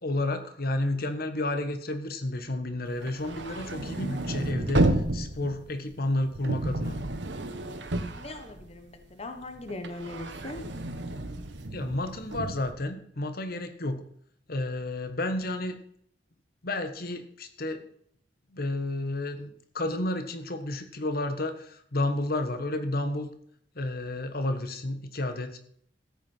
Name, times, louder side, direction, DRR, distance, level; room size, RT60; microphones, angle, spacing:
voice 1, 0.0-7.0 11.7-14.0 14.5-15.7 16.6-17.8 18.5-23.3 23.7-25.6, left 1 dB, 60° left, 9 dB, 1.4 m, -31 dB
sound 1, 2.9-9.1 9.4-12.7, right 1 dB, 85° right, 1.4 m, -31 dB
voice 2, 8.1-10.6, left 2 dB, 35° left, 7 dB, 1.3 m, -40 dB
14.0 x 8.6 x 5.6 m, 0.66 s
head